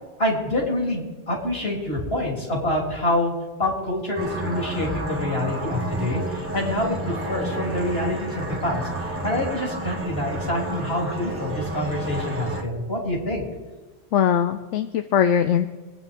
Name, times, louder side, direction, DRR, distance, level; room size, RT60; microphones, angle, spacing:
voice 1, 0.2-3.3 3.6-13.5, left 1 dB, 55° left, -2 dB, 3.5 m, -26 dB
sound 1, 4.2-12.6, right 2 dB, 10° right, 1.7 m, -30 dB
voice 2, 14.1-15.7, left 8 dB, 80° left, 9 dB, 0.9 m, -21 dB
23.5 x 9.1 x 3.6 m, 1.3 s
omnidirectional pair, 1.3 m